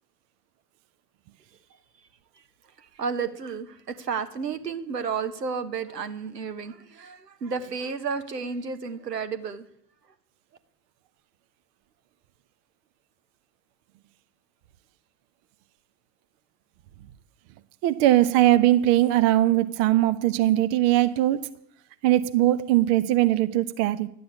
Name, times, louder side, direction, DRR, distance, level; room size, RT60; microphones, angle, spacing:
voice 1, 3.0-9.7, right 5 dB, 75° right, 1.3 m, -32 dB
voice 2, 17.8-21.5 22.0-24.1, right 14 dB, 35° right, 0.8 m, -20 dB
11.5 x 8.6 x 8.7 m
figure-of-eight pair, 85°, 49 cm